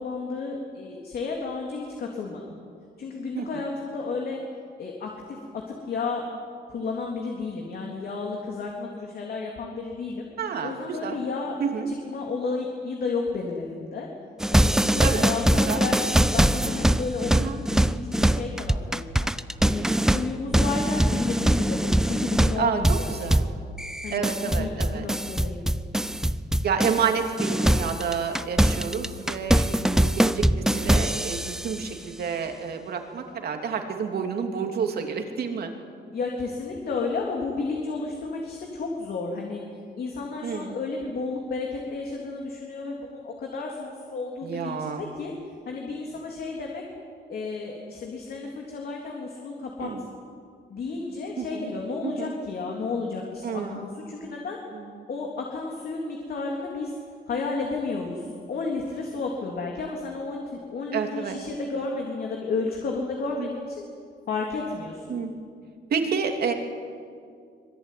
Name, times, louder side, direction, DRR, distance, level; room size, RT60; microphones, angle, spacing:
voice 1, 0.0-2.4 3.0-4.4 4.8-6.2 6.7-10.3 10.6-11.6 11.9-14.1 14.5-17.4 17.7-19.3 19.6-23.1 24.0-25.6 36.1-39.6 40.0-45.3 45.7-46.8 47.3-49.9 50.7-54.6 55.1-56.9 57.3-63.8 64.3-65.1, left 4 dB, 55° left, 0 dB, 3.5 m, -32 dB
voice 2, 10.4-11.2 11.6-11.9 15.0-15.3 15.7-15.8 17.3-17.6 22.5-23.4 24.1-25.0 26.6-35.7 40.4-40.7 44.4-45.0 49.8-50.1 51.4-51.7 52.0-52.3 53.4-53.8 54.7-55.1 60.9-61.4 63.4-63.5 65.1-65.3 65.9-66.5, right 6 dB, 60° right, 4 dB, 3.0 m, -29 dB
sound 1, 14.4-27.1 27.4-31.8, right 1 dB, 5° right, 0.6 m, -23 dB
25.0 x 22.5 x 9.5 m, 2.2 s
cardioid pair, 145°, 18 cm